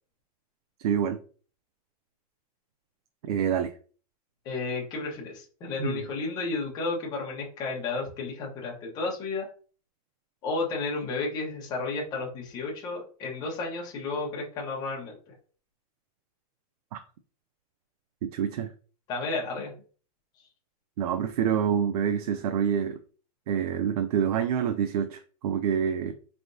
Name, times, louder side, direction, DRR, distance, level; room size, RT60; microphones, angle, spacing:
voice 1, 0.8-1.2 3.2-3.7 5.8-6.0 16.9-17.0 18.2-18.7 21.0-23.0 23.5-26.1, right 8 dB, 90° right, 9 dB, 0.5 m, -27 dB
voice 2, 4.4-9.5 10.4-15.1 19.1-19.7, left 3 dB, 20° left, -1 dB, 1.1 m, -32 dB
4.3 x 3.4 x 2.7 m, 0.40 s
supercardioid pair, 180°, 19 cm